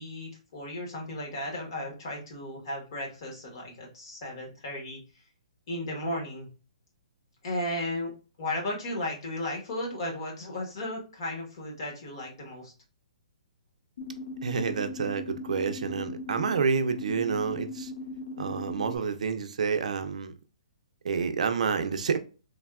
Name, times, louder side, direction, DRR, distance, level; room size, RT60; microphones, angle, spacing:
voice 1, 0.0-5.0 5.7-6.5 7.4-8.1 8.4-12.7, left 1 dB, 40° left, 1.1 m, -35 dB
sound 1, 14.0-19.0, left 2 dB, 80° left, 0.9 m, -39 dB
voice 2, 14.4-17.9 18.4-20.3 21.0-22.2, right 5 dB, 65° right, 0.4 m, -29 dB
3.4 x 2.2 x 2.3 m
hypercardioid pair, 170°, 4 cm